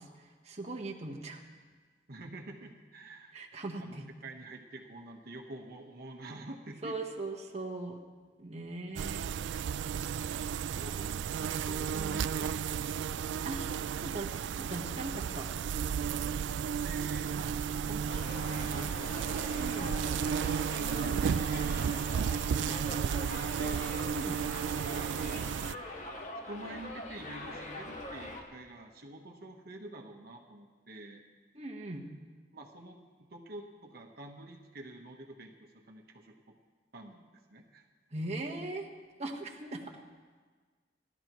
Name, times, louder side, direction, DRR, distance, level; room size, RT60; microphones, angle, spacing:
voice 1, 0.0-1.4 3.3-4.1 6.8-8.0 8.4-9.3 13.4-13.7 14.0-14.3 14.6-15.5 19.5-20.0 24.0-24.5 31.5-32.1 38.1-38.9 39.2-40.0, right 2 dB, 40° right, 0 dB, 1.3 m, -39 dB
voice 2, 2.1-3.4 3.8-7.0 10.6-13.3 16.8-19.6 20.1-20.2 20.5-22.1 22.4-23.9 24.8-25.6 26.5-31.2 32.5-36.5 36.9-37.9, right 1 dB, 60° right, 2 dB, 1.2 m, -47 dB
sound 1, 9.0-25.8, right 7 dB, 90° right, 0.3 m, -33 dB
Subway metro underground, 18.1-28.4, left 2 dB, 45° left, 1.8 m, -43 dB
30.0 x 12.0 x 3.1 m, 1.5 s
head